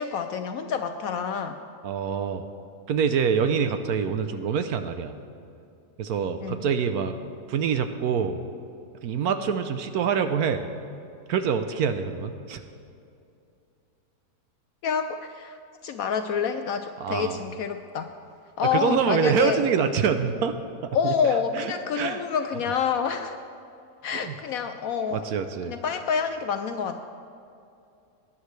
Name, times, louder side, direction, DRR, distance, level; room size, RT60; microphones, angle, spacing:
voice 1, 0.0-1.6 6.4-6.6 14.8-15.6 15.8-18.1 18.6-19.6 20.9-23.4 24.0-25.2 25.7-27.0, left 6 dB, 70° left, 8 dB, 0.8 m, -27 dB
voice 2, 1.8-2.4 2.9-5.1 6.0-7.1 7.5-8.4 9.0-10.6 11.3-12.6 17.0-17.4 18.7-20.6 20.8-22.2 24.1-24.4 25.1-25.7, right 6 dB, 70° right, 9 dB, 1.0 m, -26 dB
18.5 x 10.0 x 3.2 m, 2.6 s
omnidirectional pair, 1.8 m